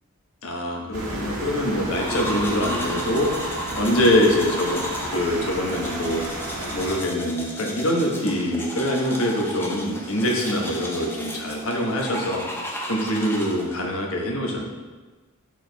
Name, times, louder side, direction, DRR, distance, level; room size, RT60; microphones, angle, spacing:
voice 1, 0.4-3.3 3.7-4.8 5.1-6.2 6.7-12.4 12.9-14.6, equal, 70° left, 0 dB, 1.2 m, -24 dB
sound 1, 0.9-7.0, right 1 dB, 90° right, 1.5 m, -32 dB
sound 2, 1.9-13.9, equal, 10° left, 0.7 m, -34 dB
6.6 x 5.0 x 4.0 m, 1.3 s
head